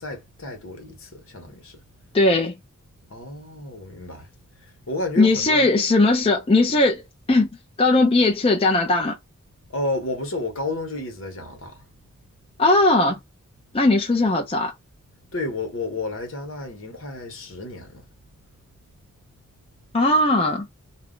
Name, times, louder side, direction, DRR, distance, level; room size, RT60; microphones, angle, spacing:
voice 1, 0.0-1.8 3.1-4.3 4.5-5.7 9.7-11.9 15.3-18.1, left 2 dB, 70° left, 1.1 m, -31 dB
voice 2, 2.1-2.6 5.2-7.0 7.3-7.5 7.8-9.2 12.6-13.2 13.7-14.7 19.9-20.7, left 2 dB, 25° left, 0.5 m, -18 dB
2.4 x 2.1 x 3.6 m
head